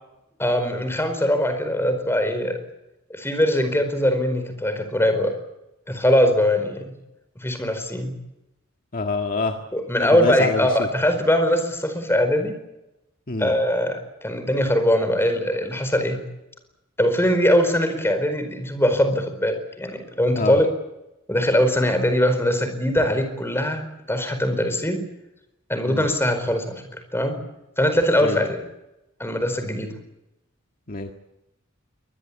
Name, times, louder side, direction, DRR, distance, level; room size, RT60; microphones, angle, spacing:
voice 1, 0.4-2.6 3.1-5.3 5.9-6.8 7.4-8.1 9.7-12.6 13.4-16.2 17.0-20.7 21.3-25.0 25.7-27.4 27.8-28.6 29.2-29.9, left 1 dB, 10° left, 8 dB, 4.6 m, -21 dB
voice 2, 8.9-9.6 10.0-10.9 13.3-13.5 20.4-20.6 25.9-26.1 28.2-28.4 30.9-31.1, left 3 dB, 45° left, 4 dB, 1.8 m, -26 dB
24.0 x 20.0 x 8.6 m, 0.92 s
head